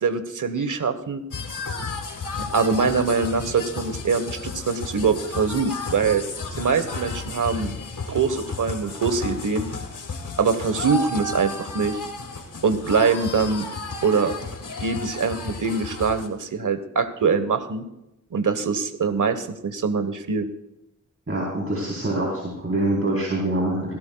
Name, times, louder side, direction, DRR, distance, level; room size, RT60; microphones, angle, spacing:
voice 1, 0.0-1.2 2.5-6.2 6.5-7.7 8.1-9.7 10.4-12.0 12.6-13.7 14.0-14.3 14.8-17.9 18.3-20.5, right 5 dB, 70° right, 10 dB, 1.3 m, -23 dB
sound 1, 1.3-16.3, left 3 dB, 70° left, 1.8 m, -33 dB
voice 2, 21.3-24.0, right 1 dB, 45° right, -4 dB, 4.0 m, -25 dB
17.0 x 17.0 x 2.3 m, 0.89 s
cardioid pair, 65°, 32 cm